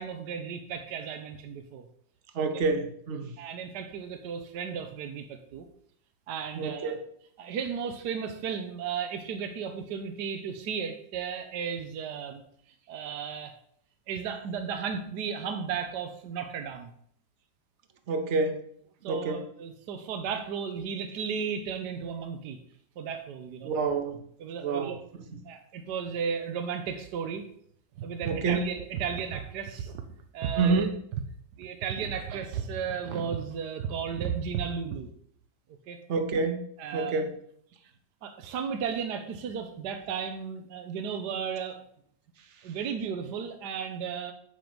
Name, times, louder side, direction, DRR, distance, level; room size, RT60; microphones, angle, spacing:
voice 1, 0.0-1.9 3.4-5.6 6.3-7.0 7.4-12.4 12.9-13.5 14.1-16.9 19.0-22.6 23.0-23.7 24.4-25.0 25.4-27.4 28.0-29.9 30.3-30.9 31.6-35.1 35.9-36.0 36.8-37.2 38.2-41.8 42.6-44.3, right 7 dB, 75° right, 7 dB, 1.4 m, -34 dB
voice 2, 2.3-3.4 6.5-7.0 18.1-18.7 19.1-19.5 23.6-24.3 24.6-25.4 28.2-28.7 30.6-31.0 36.1-37.4, right 4 dB, 50° right, 7 dB, 1.2 m, -28 dB
8.2 x 5.2 x 6.0 m, 0.65 s
omnidirectional pair, 1.8 m